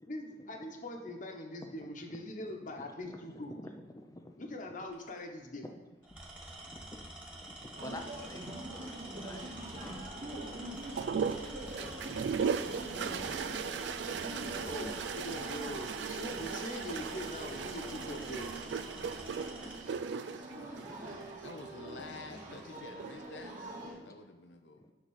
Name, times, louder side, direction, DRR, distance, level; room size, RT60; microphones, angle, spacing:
voice 1, 0.1-3.6 4.4-5.6 14.6-18.5, left 1 dB, 45° left, 3 dB, 1.2 m, -42 dB
voice 2, 1.6-4.9 5.6-5.8 6.1-10.4 12.0-13.9 19.6-21.5 22.0-22.1 22.4-22.7 24.0-24.1 24.7-24.9, left 1 dB, 20° left, 3 dB, 0.5 m, -52 dB
Tools, 4.9-5.2 6.0-19.9, right 1 dB, 5° right, 1.6 m, -48 dB
sound 1, 7.8-23.9, right 1 dB, 50° right, 2.4 m, -45 dB
sound 2, 11.0-21.6 22.8-23.4, right 6 dB, 75° right, 0.4 m, -37 dB
voice 3, 21.4-24.8, left 3 dB, 85° left, 6 dB, 0.7 m, -49 dB
9.6 x 3.9 x 6.4 m, 1.3 s
head